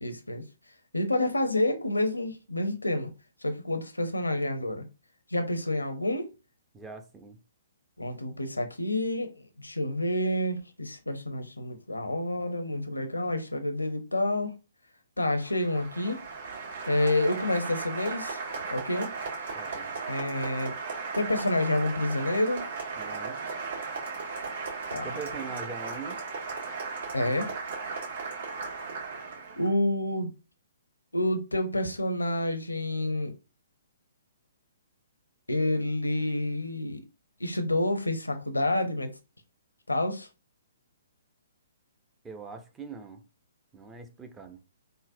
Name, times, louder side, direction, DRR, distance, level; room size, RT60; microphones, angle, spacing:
voice 1, 0.0-0.4 0.9-3.1 3.4-4.9 5.3-6.3 8.0-14.6 15.2-16.2 16.9-18.4 18.7-19.1 20.1-20.7 21.1-22.7 24.9-25.1 27.1-27.5 29.6-30.3 31.1-33.3 35.5-37.0 37.4-39.1 39.9-40.3, left 1 dB, 90° left, 0.6 m, -28 dB
voice 2, 6.7-7.4 19.5-19.9 23.0-23.4 25.0-26.2 42.2-43.2 43.7-44.6, right 4 dB, 10° right, 0.5 m, -42 dB
Applause, 15.3-29.7, right 4 dB, 65° right, 1.6 m, -36 dB
3.7 x 2.1 x 2.6 m
figure-of-eight pair, 125°, 0 cm